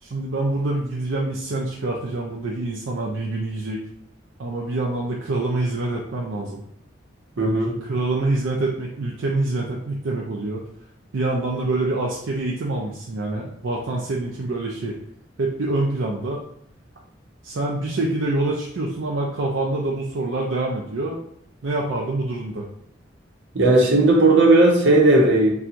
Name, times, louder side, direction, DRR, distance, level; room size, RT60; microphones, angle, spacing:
voice 1, 0.0-3.8 4.4-6.6 7.4-10.6 11.1-15.0 15.4-16.4 17.4-21.2 21.6-22.7, right 2 dB, 90° right, -2 dB, 0.5 m, -26 dB
voice 2, 7.4-7.8 23.5-25.5, right 2 dB, 70° right, -1 dB, 0.9 m, -16 dB
4.3 x 2.3 x 2.5 m, 0.72 s
head